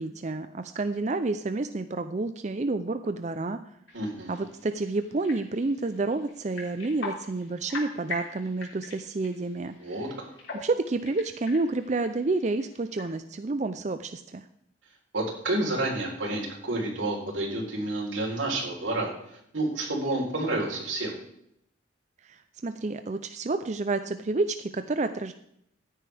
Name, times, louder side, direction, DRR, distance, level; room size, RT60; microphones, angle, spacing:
voice 1, 0.0-3.6 4.3-10.0 10.5-14.4 22.2-25.3, right 3 dB, 35° right, 10 dB, 0.4 m, -29 dB
sound 1, 3.9-13.1, left 3 dB, 75° left, 3.6 m, -43 dB
voice 2, 3.9-4.4 9.8-10.3 15.1-21.2, right 2 dB, 90° right, -1 dB, 3.9 m, -30 dB
14.0 x 9.9 x 3.4 m, 0.74 s
head